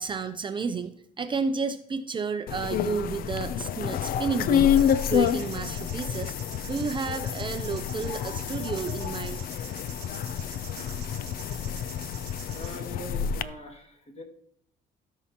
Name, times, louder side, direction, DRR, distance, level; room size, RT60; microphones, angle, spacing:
voice 1, 0.0-6.3 6.6-9.4, right 5 dB, 30° right, 8 dB, 0.6 m, -31 dB
sound 1, 2.5-13.4, left 9 dB, 60° left, 0.5 m, -28 dB
sound 2, 4.8-12.9, right 11 dB, 85° right, 1.2 m, -46 dB
voice 2, 12.5-14.2, equal, 40° left, 1 dB, 2.2 m, -42 dB
17.0 x 5.7 x 3.0 m, 0.69 s
cardioid pair, 110°, 17 cm